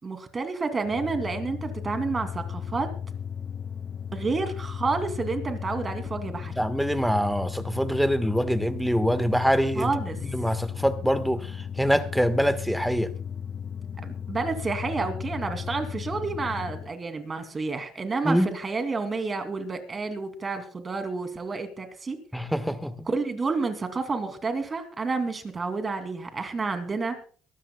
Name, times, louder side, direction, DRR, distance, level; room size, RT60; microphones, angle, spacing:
voice 1, 0.0-2.9 4.1-6.5 9.7-10.2 14.0-22.2 23.1-27.2, right 4 dB, 30° right, 2.8 m, -30 dB
sound 1, 0.8-16.9, left 8 dB, 45° left, 0.5 m, -35 dB
voice 2, 6.5-9.9 10.2-13.1 18.2-18.5 22.3-23.1, equal, ahead, 1.5 m, -25 dB
23.0 x 13.0 x 2.3 m
supercardioid pair, 75°, 0 cm